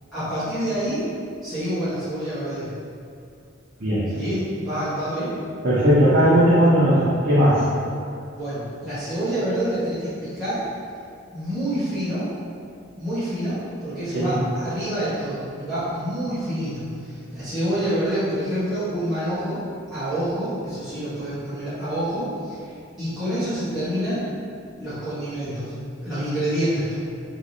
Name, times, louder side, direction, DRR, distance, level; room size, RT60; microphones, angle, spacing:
voice 1, 0.1-1.0 1.4-2.7 4.1-5.3 8.3-10.6 11.3-12.3 13.0-13.6 13.8-19.6 19.9-22.7 23.0-24.2 24.8-25.7 26.0-26.9, right 1 dB, ahead, -17 dB, 1.3 m, -27 dB
voice 2, 5.6-7.6 14.1-14.3, equal, 50° right, -11 dB, 0.9 m, -17 dB
3.4 x 3.2 x 4.0 m, 2.4 s
head